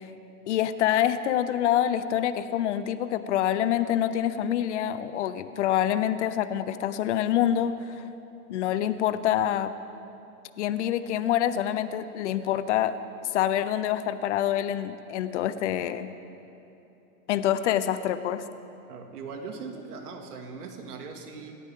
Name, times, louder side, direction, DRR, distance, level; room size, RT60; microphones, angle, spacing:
voice 1, 0.5-8.0 8.5-9.7 10.6-13.0 13.3-16.1 17.3-18.4, left 11 dB, 50° left, 13 dB, 0.8 m, -26 dB
voice 2, 18.9-21.6, right 4 dB, 85° right, 3 dB, 2.5 m, -40 dB
27.0 x 13.5 x 3.8 m, 3.0 s
supercardioid pair, 165°, 44 cm